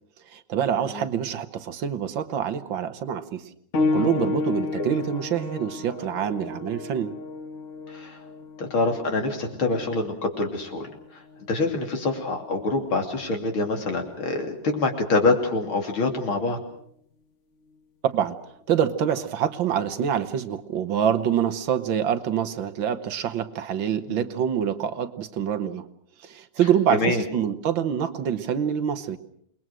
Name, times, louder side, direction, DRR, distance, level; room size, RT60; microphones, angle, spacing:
voice 1, 0.3-3.4 3.9-7.1 18.0-18.4 18.7-25.8 26.2-29.2, right 8 dB, 65° right, 11 dB, 1.9 m, -26 dB
sound 1, 3.7-14.0 14.9-15.0 15.8-15.9, left 3 dB, 40° left, 1.5 m, -33 dB
voice 2, 8.6-10.9 11.5-16.6 24.0-24.2 26.9-27.2, left 3 dB, 75° left, 3 dB, 3.8 m, -25 dB
28.0 x 21.0 x 6.2 m, 0.71 s
omnidirectional pair, 2.3 m